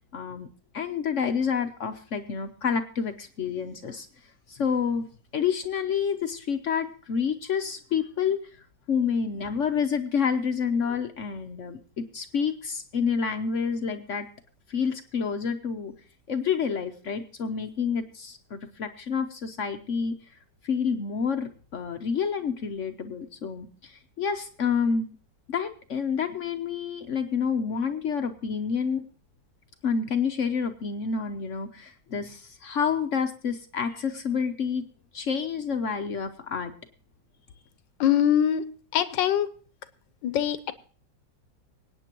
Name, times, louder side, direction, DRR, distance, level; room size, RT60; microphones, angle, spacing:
voice 1, 0.1-0.5 0.7-4.1 4.5-5.1 5.3-8.4 8.9-14.3 14.7-15.9 16.3-20.2 20.6-25.1 25.5-29.1 29.8-34.8 35.1-36.7, left 6 dB, 55° left, 7 dB, 0.9 m, -28 dB
voice 2, 38.0-38.6 38.9-39.5 40.2-40.7, left 10 dB, 85° left, 14 dB, 1.4 m, -23 dB
24.5 x 9.1 x 2.9 m, 0.41 s
omnidirectional pair, 2.0 m